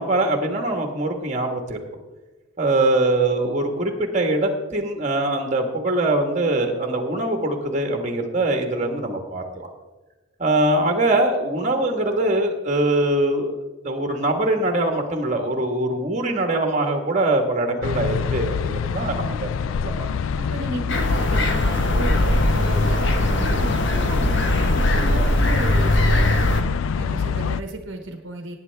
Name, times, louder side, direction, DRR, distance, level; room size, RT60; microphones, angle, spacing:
voice 1, 0.0-1.8 2.6-9.7 10.4-13.6 13.8-19.5 19.8-20.1, right 2 dB, 35° right, 4 dB, 1.5 m, -22 dB
sound 1, 17.8-27.6, left 6 dB, 75° left, 0.3 m, -26 dB
voice 2, 18.9-19.4 20.4-26.5 26.9-28.6, right 1 dB, 65° right, 4 dB, 1.1 m, -34 dB
sound 2, 20.9-26.6, left 1 dB, 60° left, 1.2 m, -20 dB
18.0 x 9.1 x 3.5 m, 1.2 s
head